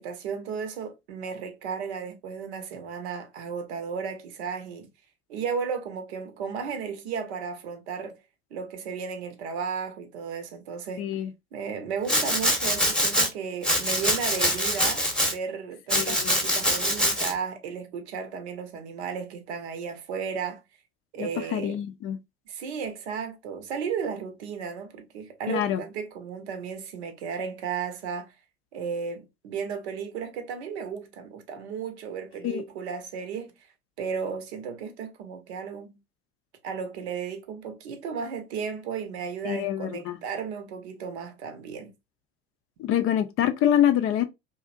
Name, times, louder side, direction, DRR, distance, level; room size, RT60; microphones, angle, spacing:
voice 1, 0.0-4.9 5.3-8.1 8.5-11.1 11.5-20.6 21.1-21.8 22.5-28.3 28.7-33.5 34.0-36.0 36.6-41.9, right 6 dB, 75° right, 0.7 m, -34 dB
voice 2, 11.0-11.3 15.9-16.3 21.2-22.2 25.5-25.8 32.4-32.6 39.4-40.2 42.8-44.2, left 10 dB, 40° left, 0.4 m, -25 dB
Domestic sounds home sounds, 12.1-13.3 13.6-15.3 15.9-17.3, equal, ahead, 0.8 m, -24 dB
2.6 x 2.1 x 2.4 m
hypercardioid pair, 75°, 34 cm